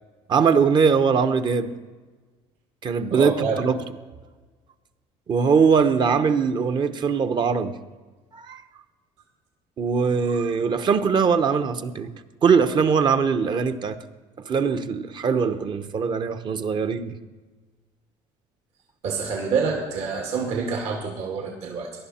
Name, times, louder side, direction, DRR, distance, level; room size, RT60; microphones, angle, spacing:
voice 1, 0.3-1.7 2.8-3.8 5.3-7.8 8.3-8.6 9.8-12.1 12.4-14.0 14.5-17.1, right 6 dB, 40° right, 0.9 m, -21 dB
voice 2, 3.1-3.6 19.0-21.9, right 5 dB, 65° right, 2.3 m, -27 dB
18.5 x 11.5 x 4.3 m
cardioid pair, 110°, 12 cm